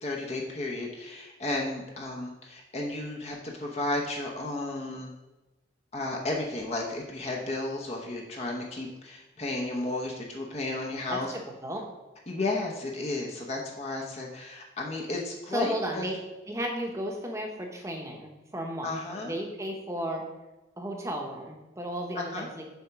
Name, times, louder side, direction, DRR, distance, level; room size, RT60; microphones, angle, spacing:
voice 1, 0.0-5.1 5.9-11.3 12.3-16.1 18.8-19.3 22.1-22.5, left 2 dB, 35° left, -1 dB, 0.9 m, -33 dB
voice 2, 11.1-11.8 15.5-16.2 16.5-20.2 20.8-22.8, right 1 dB, 15° right, 2 dB, 1.0 m, -34 dB
7.2 x 4.3 x 5.9 m, 1.1 s
head